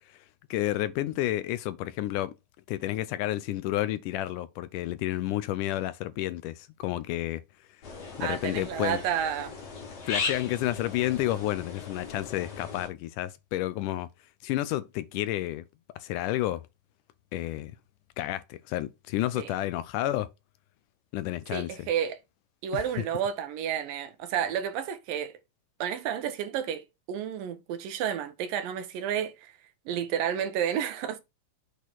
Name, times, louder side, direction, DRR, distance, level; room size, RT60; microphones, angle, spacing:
voice 1, 0.5-2.3 2.7-7.4 8.2-9.0 10.1-14.1 14.4-15.6 16.0-16.6 17.3-17.7 18.2-20.3 21.1-21.9 22.7-22.8, left 15 dB, 80° left, 2.0 m, -30 dB
sound 1, 7.8-12.9, left 5 dB, 50° left, 3.2 m, -37 dB
voice 2, 8.2-9.5 19.4-19.5 21.5-22.2 22.6-25.3 25.8-29.5 29.9-31.2, right 9 dB, 85° right, 2.7 m, -31 dB
8.1 x 4.3 x 4.6 m
omnidirectional pair, 3.9 m